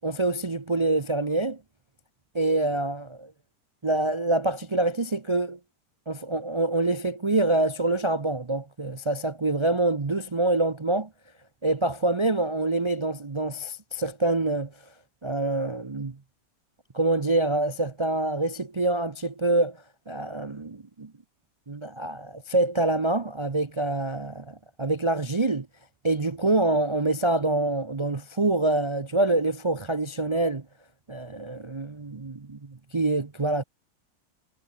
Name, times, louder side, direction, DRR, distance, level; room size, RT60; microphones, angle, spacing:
voice 1, 0.0-1.6 2.3-3.3 3.8-5.6 6.1-11.1 11.6-14.7 15.2-16.2 16.9-19.8 20.1-21.1 21.7-25.7 26.0-30.6 31.1-33.6, right 2 dB, 45° right, 0.3 m, -26 dB
omnidirectional pair, 1.9 m